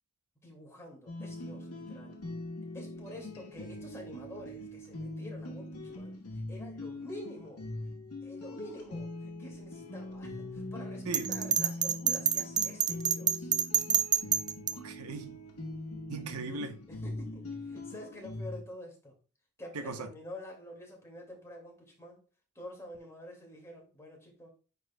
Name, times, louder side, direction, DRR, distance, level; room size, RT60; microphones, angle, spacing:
voice 1, 0.4-2.2 2.7-6.2 6.5-7.6 8.2-13.5 16.9-19.1 19.6-22.2 22.6-24.5, left 1 dB, 15° left, 2.1 m, -48 dB
sound 1, 1.1-18.6, left 1 dB, 85° left, 1.2 m, -42 dB
Bell, 11.1-14.7, right 8 dB, 20° right, 0.4 m, -27 dB
voice 2, 11.1-11.5 14.7-15.4 16.1-16.8 19.7-20.1, right 3 dB, 85° right, 0.8 m, -39 dB
9.3 x 4.6 x 2.2 m
head